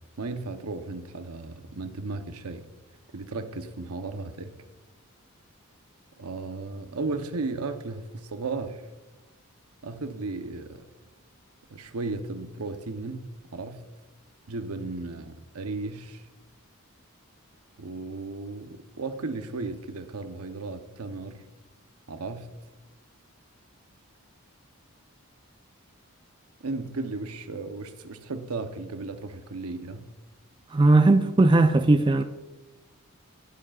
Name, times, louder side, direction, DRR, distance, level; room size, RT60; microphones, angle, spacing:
voice 1, 0.2-2.7 3.1-4.5 6.2-8.9 9.8-10.8 11.7-13.8 14.5-16.2 17.8-21.4 22.1-22.5 26.6-30.1, right 3 dB, 85° right, 0.8 m, -35 dB
voice 2, 30.7-32.2, right 2 dB, 20° right, 0.3 m, -18 dB
19.0 x 7.5 x 2.4 m
head